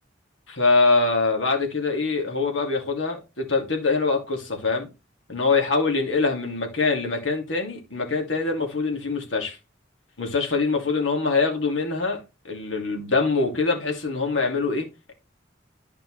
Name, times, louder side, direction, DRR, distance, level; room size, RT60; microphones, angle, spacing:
voice 1, 0.5-4.9 5.3-9.6 10.2-15.1, left 3 dB, 80° left, 2.4 m, -24 dB
12.0 x 5.1 x 3.2 m
head